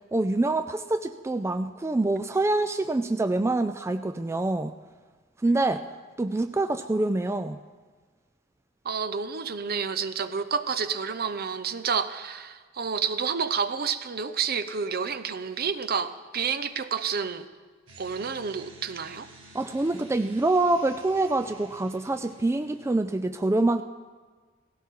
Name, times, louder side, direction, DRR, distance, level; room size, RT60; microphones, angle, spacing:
voice 1, 0.1-4.7 5.4-5.8 6.2-7.6 19.5-23.8, right 2 dB, 15° right, 0.3 m, -25 dB
voice 2, 8.8-17.5 18.0-19.3, right 6 dB, 50° right, 0.7 m, -29 dB
sound 1, 17.9-22.9, right 1 dB, 80° right, 2.1 m, -51 dB
17.5 x 16.5 x 3.7 m
head